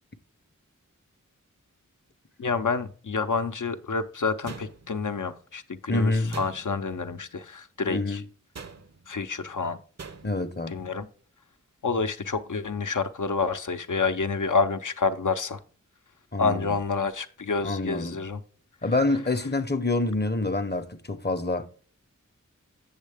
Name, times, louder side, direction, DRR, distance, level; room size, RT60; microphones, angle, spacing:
voice 1, 2.4-8.2 9.1-9.8 10.7-11.1 11.8-15.6 16.4-18.4, left 4 dB, 70° left, 0.7 m, -28 dB
sound 1, 4.4-5.2 6.3-7.0 8.5-9.1 10.0-10.5, right 4 dB, 55° right, 0.7 m, -43 dB
voice 2, 5.9-6.4 7.9-8.2 10.2-10.8 16.3-16.7 17.6-18.2 18.8-21.7, left 2 dB, 35° left, 0.7 m, -27 dB
7.3 x 7.3 x 3.4 m
wide cardioid pair, 45°, 31 cm